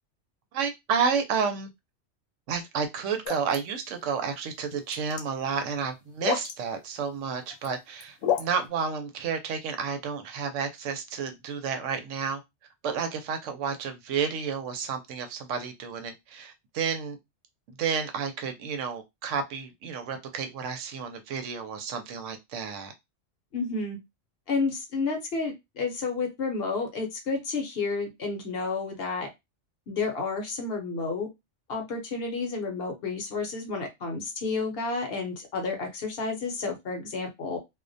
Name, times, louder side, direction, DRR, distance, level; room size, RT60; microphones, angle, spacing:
voice 1, 0.5-1.7 2.5-12.4 12.8-17.2 17.8-22.9, right 6 dB, 80° right, 0.9 m, -31 dB
sound 1, 3.2-3.6 4.7-5.2 6.2-6.5 7.4-7.7 8.0-8.5, left 9 dB, 85° left, 0.9 m, -28 dB
voice 2, 23.5-24.0 24.5-29.3 29.9-31.3 31.7-37.6, left 4 dB, 60° left, 0.8 m, -31 dB
2.3 x 2.1 x 2.5 m
omnidirectional pair, 1.3 m